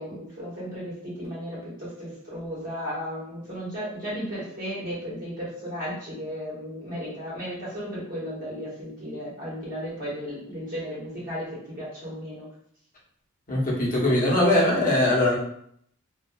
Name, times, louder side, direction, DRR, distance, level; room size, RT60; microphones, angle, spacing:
voice 1, 0.0-12.5, equal, 45° right, -8 dB, 1.3 m, -35 dB
voice 2, 13.5-15.4, left 1 dB, 40° left, -5 dB, 0.9 m, -21 dB
2.6 x 2.4 x 2.2 m, 0.67 s
head